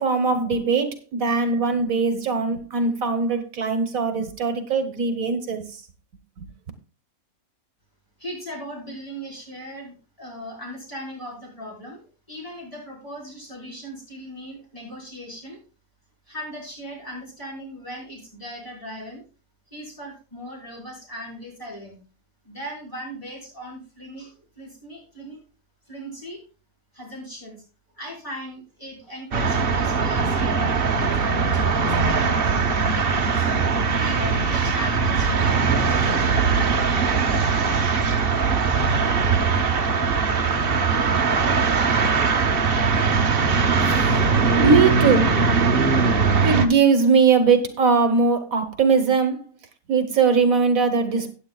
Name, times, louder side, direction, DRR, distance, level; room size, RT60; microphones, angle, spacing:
voice 1, 0.0-5.6 6.4-6.5 43.8-45.3 46.4-49.5 49.9-51.3, right 5 dB, 70° right, 1.5 m, -21 dB
voice 2, 8.2-15.6 16.3-19.2 19.7-22.0 22.4-25.4 25.9-26.4 26.9-27.6 27.9-32.5 32.9-33.6 34.0-36.4, equal, 25° left, 5.2 m, -38 dB
sound 1, 29.3-46.7, right 5 dB, 45° right, 1.1 m, -20 dB
16.0 x 9.2 x 2.3 m
omnidirectional pair, 1.5 m